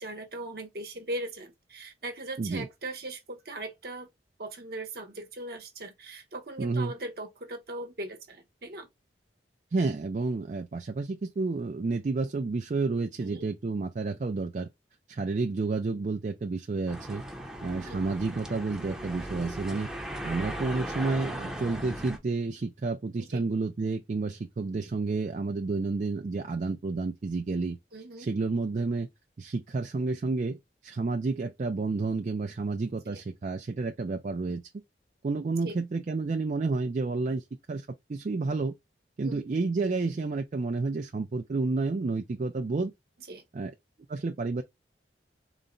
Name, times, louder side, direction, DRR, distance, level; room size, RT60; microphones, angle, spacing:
voice 1, 0.0-4.1 4.4-8.9 13.2-13.4 17.7-18.0 23.2-23.4 27.9-28.3 33.0-33.2 35.6-35.7 39.2-39.4 43.3-43.4, right 1 dB, 60° right, 1.0 m, -39 dB
voice 2, 6.6-6.9 9.7-14.7 15.1-17.2 17.6-19.9 20.2-27.8 28.2-29.1 29.4-34.6 35.2-38.8 39.2-42.9 43.5-43.7 44.1-44.6, right 3 dB, 40° right, 0.4 m, -30 dB
sound 1, 16.9-22.2, equal, 5° right, 0.6 m, -37 dB
4.0 x 2.1 x 3.7 m
head